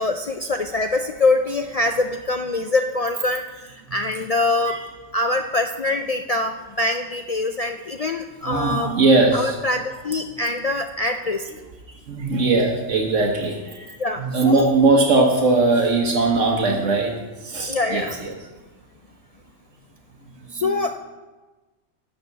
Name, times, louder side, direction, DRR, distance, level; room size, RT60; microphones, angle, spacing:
voice 1, 0.0-4.8 5.1-8.9 9.3-11.5 14.0-14.7 17.7-18.2 20.5-21.0, left 2 dB, 70° left, 5 dB, 0.3 m, -24 dB
voice 2, 8.4-9.6 12.1-17.1 17.4-18.3 20.6-20.7, right 3 dB, 75° right, 1 dB, 1.4 m, -20 dB
13.0 x 4.4 x 8.0 m, 1.2 s
omnidirectional pair, 1.3 m